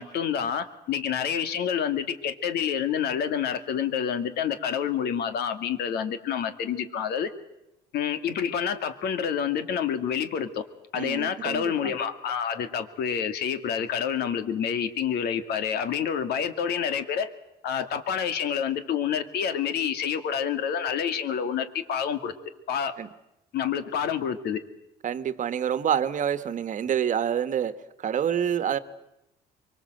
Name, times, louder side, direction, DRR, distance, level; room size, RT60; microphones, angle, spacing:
voice 1, 0.0-7.3 7.9-10.6 10.9-17.3 17.6-22.3 22.7-22.9 23.5-24.6, left 8 dB, 70° left, 10 dB, 2.3 m, -28 dB
voice 2, 10.9-12.0 23.0-23.1 25.0-28.8, right 9 dB, 50° right, 13 dB, 1.4 m, -27 dB
24.0 x 24.0 x 7.8 m, 0.87 s
cardioid pair, 110°, 17 cm